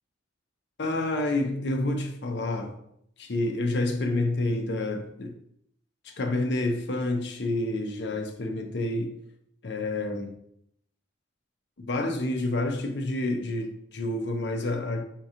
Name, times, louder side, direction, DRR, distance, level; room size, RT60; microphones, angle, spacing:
voice 1, 0.8-2.8 3.2-5.3 6.0-9.2 9.6-10.3 11.8-15.0, left 2 dB, 60° left, 0.6 m, -28 dB
4.5 x 2.9 x 3.7 m
head